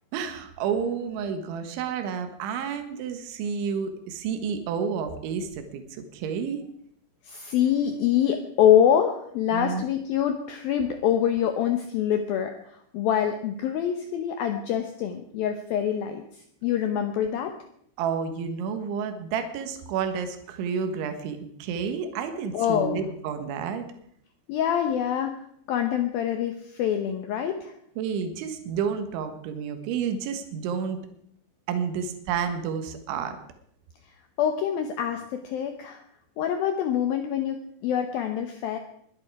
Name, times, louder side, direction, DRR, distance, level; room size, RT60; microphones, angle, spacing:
voice 1, 0.1-6.6 9.5-9.8 18.0-23.9 28.0-31.0 31.7-33.4, right 6 dB, 75° right, 7 dB, 3.7 m, -30 dB
voice 2, 7.2-17.5 22.5-23.0 24.5-25.4 25.7-27.8 34.4-36.0 36.4-38.8, left 9 dB, 85° left, 6 dB, 2.1 m, -25 dB
21.5 x 10.5 x 4.8 m, 0.68 s
omnidirectional pair, 5.5 m